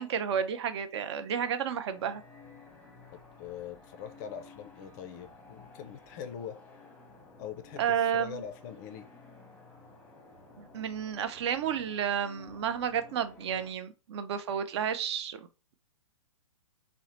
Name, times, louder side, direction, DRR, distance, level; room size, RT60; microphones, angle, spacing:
voice 1, 0.0-2.2 7.8-8.4 10.6-15.5, right 8 dB, 50° right, 0.4 m, -31 dB
sound 1, 1.9-13.7, left 3 dB, 10° left, 0.7 m, -54 dB
voice 2, 3.1-6.6 7.4-9.1, left 8 dB, 35° left, 0.3 m, -43 dB
2.7 x 2.0 x 3.0 m
hypercardioid pair, 125°, 18 cm